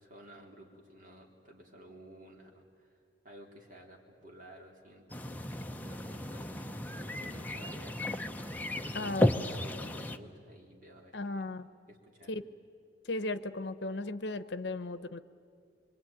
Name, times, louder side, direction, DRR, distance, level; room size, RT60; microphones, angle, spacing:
voice 1, 0.0-3.0 3.2-5.3 5.7-7.9 8.8-11.4 11.9-12.3, right 1 dB, 45° right, 0 dB, 3.6 m, -53 dB
sound 1, 5.1-10.2, left 1 dB, 10° left, 0.7 m, -34 dB
voice 2, 8.9-9.3 11.1-11.7 12.3-12.4 13.0-15.2, left 2 dB, 60° left, 13 dB, 0.9 m, -36 dB
24.5 x 24.0 x 9.2 m, 2.3 s
head